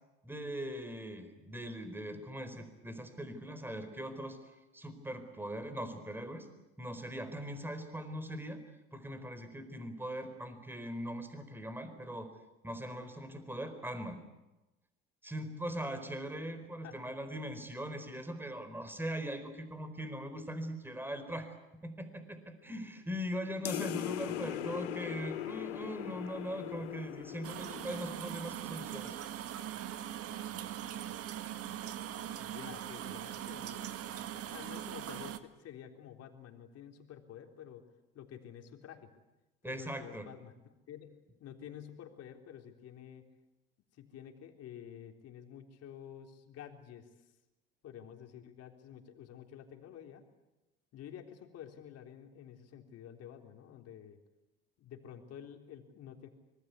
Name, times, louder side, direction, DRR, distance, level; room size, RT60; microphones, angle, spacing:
voice 1, 0.2-4.4 4.7-6.5 6.8-8.6 8.9-12.3 12.6-14.2 15.2-21.6 21.8-29.1 39.6-40.3, equal, 5° right, 9 dB, 4.5 m, -40 dB
sound 1, 23.6-28.5, left 14 dB, 90° left, 0.8 m, -40 dB
sound 2, 27.4-35.4, right 11 dB, 50° right, 1.7 m, -41 dB
voice 2, 32.4-33.9 34.3-37.8 38.1-39.1 39.6-43.3 43.9-47.3 47.8-50.2 50.9-54.2 54.8-56.3, left 9 dB, 55° left, 4 dB, 3.8 m, -50 dB
25.5 x 21.0 x 8.3 m, 1.0 s
hypercardioid pair, 75°, 30 cm